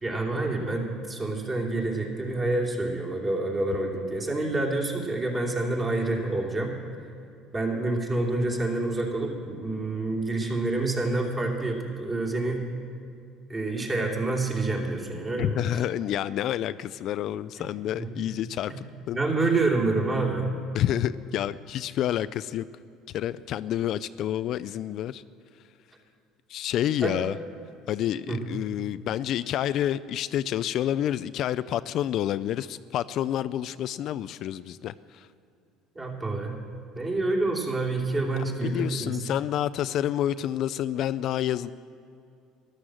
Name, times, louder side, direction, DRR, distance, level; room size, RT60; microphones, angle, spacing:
voice 1, 0.0-6.7 7.5-12.7 13.5-15.6 18.0-18.3 18.7-18.8 19.1-20.5 27.0-27.3 28.3-28.4 35.9-36.6 36.9-39.2, right 2 dB, 25° right, -1 dB, 2.9 m, -27 dB
voice 2, 15.4-19.2 20.7-22.7 23.1-25.2 26.5-27.4 27.9-35.3 38.6-41.7, left 11 dB, 60° left, 15 dB, 0.3 m, -29 dB
13.5 x 11.5 x 7.6 m, 2.6 s
supercardioid pair, 105°, 0 cm